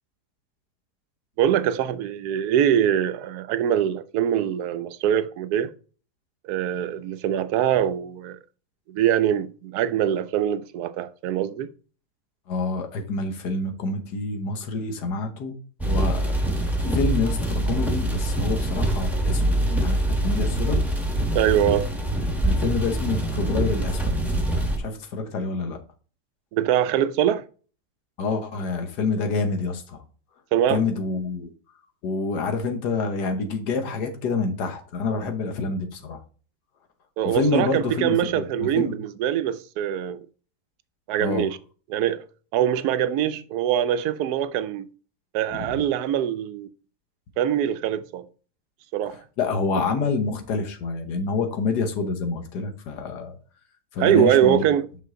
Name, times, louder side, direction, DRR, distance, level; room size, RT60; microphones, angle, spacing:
voice 1, 1.4-5.7 6.4-8.4 8.9-11.7 21.3-21.9 26.5-27.4 30.5-30.8 37.2-40.2 41.1-41.6 41.9-42.2 42.5-44.9 45.3-46.7 47.4-48.3 48.9-49.2 54.0-54.9, right 10 dB, 80° right, 1.1 m, -23 dB
voice 2, 12.5-15.5 15.8-20.8 22.4-24.1 24.8-25.8 28.2-30.0 30.7-31.5 32.0-36.2 37.2-38.9 41.2-41.4 45.5-45.8 49.4-53.4 53.9-54.7, left 3 dB, 85° left, 1.6 m, -27 dB
sound 1, 15.8-24.8, right 1 dB, ahead, 0.9 m, -24 dB
5.9 x 5.6 x 3.7 m
omnidirectional pair, 1.7 m